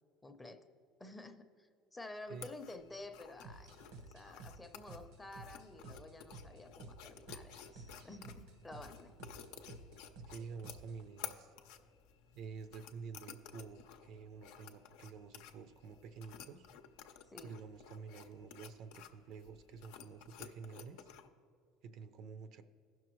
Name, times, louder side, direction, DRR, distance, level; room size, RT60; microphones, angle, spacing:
voice 1, 0.2-0.6 1.0-3.7 4.0-9.1 17.3-17.5, left 2 dB, 10° left, 6 dB, 0.6 m, -51 dB
sound 1, 2.3-21.3, left 9 dB, 80° left, 0.6 m, -54 dB
sound 2, 3.4-11.1, right 3 dB, 75° right, 1.0 m, -54 dB
voice 2, 10.3-11.5 12.3-16.7 17.4-21.1 21.8-22.6, right 5 dB, 60° right, 11 dB, 0.5 m, -49 dB
16.0 x 6.0 x 3.1 m, 2.3 s
supercardioid pair, 120°, 0 cm